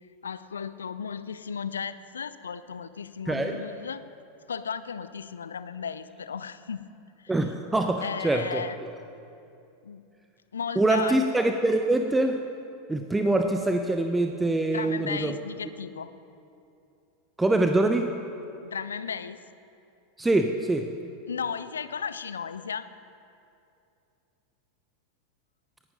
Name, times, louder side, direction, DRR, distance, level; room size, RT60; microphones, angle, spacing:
voice 1, 0.2-4.0 4.5-6.9 7.2-7.3 8.0-8.8 9.8-10.0 10.5-11.2 14.7-16.1 18.6-19.4 21.3-22.9, left 6 dB, 75° left, 14 dB, 0.5 m, -35 dB
voice 2, 3.3-3.6 7.3-8.6 10.8-12.4 12.9-15.3 17.4-18.1 20.2-20.9, right 2 dB, 10° right, 5 dB, 0.7 m, -24 dB
18.0 x 10.5 x 5.3 m, 2.7 s
figure-of-eight pair, 85°, 0 cm